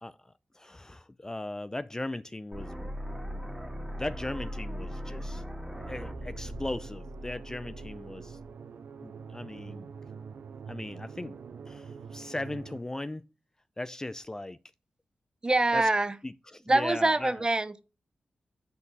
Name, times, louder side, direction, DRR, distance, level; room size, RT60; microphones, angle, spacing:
voice 1, 0.0-2.9 4.0-5.4 5.9-8.4 9.0-9.9 10.7-11.4 11.7-13.2 13.8-14.6 15.7-15.9 16.2-17.4, left 2 dB, 20° left, 0.4 m, -38 dB
sound 1, 2.5-8.5, equal, 10° right, 1.9 m, -39 dB
sound 2, 5.7-12.8, right 6 dB, 75° right, 0.5 m, -45 dB
voice 2, 15.4-16.1 16.7-17.8, right 2 dB, 30° right, 0.8 m, -25 dB
9.9 x 4.3 x 4.1 m
cardioid pair, 60°, 3 cm